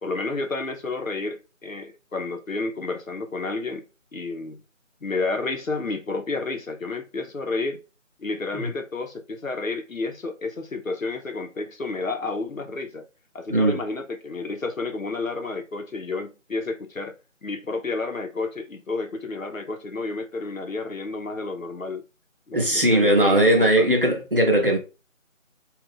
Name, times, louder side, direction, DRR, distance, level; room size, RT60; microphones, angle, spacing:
voice 1, 0.0-3.8 4.1-4.6 5.0-7.8 8.2-13.1 13.3-17.2 17.4-22.0 22.5-24.0, left 3 dB, 85° left, 0.8 m, -30 dB
voice 2, 22.5-24.8, right 1 dB, 45° right, 0.7 m, -19 dB
2.5 x 2.4 x 3.6 m
figure-of-eight pair, 165°, 39 cm